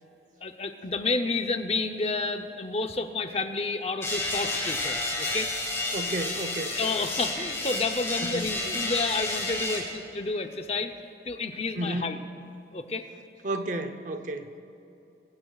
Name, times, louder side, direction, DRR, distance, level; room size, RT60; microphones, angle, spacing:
voice 1, 0.4-5.5 6.8-10.9 11.2-12.2 12.7-13.0, left 3 dB, 35° left, 6 dB, 0.7 m, -30 dB
sound 1, 4.0-9.8, left 2 dB, 15° left, 4.0 m, -30 dB
voice 2, 5.9-6.8 8.2-8.5 11.7-12.2 13.4-14.5, right 1 dB, 45° right, 8 dB, 0.8 m, -32 dB
24.5 x 16.0 x 2.4 m, 2.8 s
head